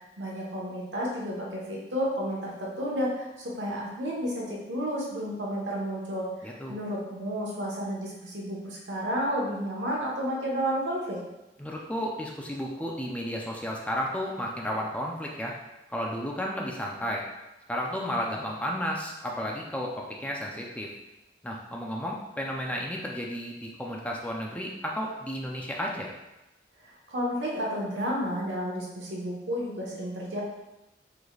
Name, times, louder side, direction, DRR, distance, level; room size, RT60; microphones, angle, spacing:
voice 1, 0.2-11.2 26.8-30.4, equal, 90° right, -3 dB, 1.2 m, -31 dB
voice 2, 6.4-6.7 11.6-15.5 15.9-17.2 17.7-20.9 21.4-26.1, equal, 10° left, -1 dB, 0.5 m, -33 dB
4.8 x 3.9 x 2.4 m, 0.98 s
head